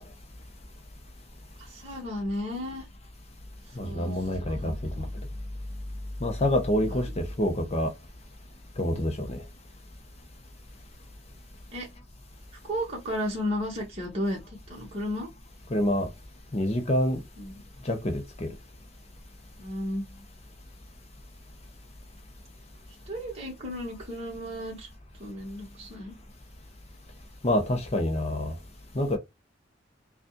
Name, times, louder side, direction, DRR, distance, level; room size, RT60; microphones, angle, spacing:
voice 1, 1.6-2.8 3.8-4.2 4.5-5.1 6.9-7.1 11.7-11.9 12.6-14.4 14.7-15.3 17.4-17.5 19.6-20.0 23.1-24.9 25.2-26.2, equal, 30° right, 1.6 m, -34 dB
voice 2, 3.8-5.1 6.2-7.9 8.8-9.4 15.7-16.1 16.5-17.2 17.8-18.5 27.4-28.5 28.9-29.2, left 1 dB, 30° left, 0.8 m, -27 dB
5.2 x 2.4 x 2.3 m
head